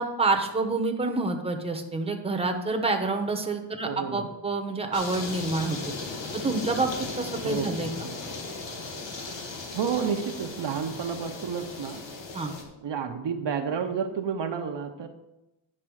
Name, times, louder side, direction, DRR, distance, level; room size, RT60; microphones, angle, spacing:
voice 1, 0.0-5.8 6.3-6.9 7.2-7.9 12.3-12.5, right 3 dB, 15° right, 5 dB, 1.0 m, -27 dB
voice 2, 3.8-4.3 7.4-8.0 9.7-12.0 12.8-15.1, right 6 dB, 65° right, 6 dB, 0.8 m, -30 dB
sound 1, 4.9-12.6, left 3 dB, 80° left, 1.5 m, -37 dB
9.9 x 4.2 x 6.3 m, 0.94 s
wide cardioid pair, 120°, 45 cm